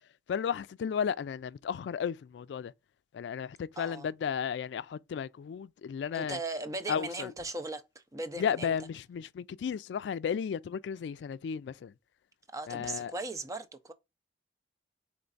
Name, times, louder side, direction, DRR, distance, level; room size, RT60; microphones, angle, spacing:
voice 1, 0.3-2.7 3.1-6.4 6.9-7.3 8.4-11.9 12.7-13.1, left 7 dB, 80° left, 0.3 m, -34 dB
voice 2, 3.8-4.1 6.1-7.8 8.1-8.7 12.5-13.9, right 2 dB, 20° right, 0.5 m, -38 dB
4.5 x 3.1 x 3.9 m
head